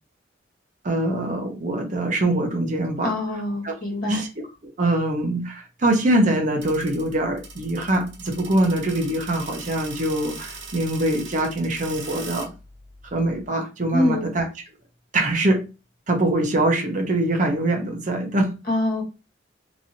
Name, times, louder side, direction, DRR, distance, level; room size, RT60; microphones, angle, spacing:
voice 1, 0.8-3.1 3.6-3.7 4.1-4.3 4.6-12.5 13.0-14.5 15.1-15.6 16.1-18.5, right 1 dB, 40° right, 0.7 m, -23 dB
voice 2, 3.0-4.2 13.9-14.3 18.7-19.0, left 1 dB, 50° left, 1.3 m, -24 dB
sound 1, 6.6-13.5, right 3 dB, 80° right, 1.3 m, -40 dB
3.0 x 2.7 x 2.6 m
head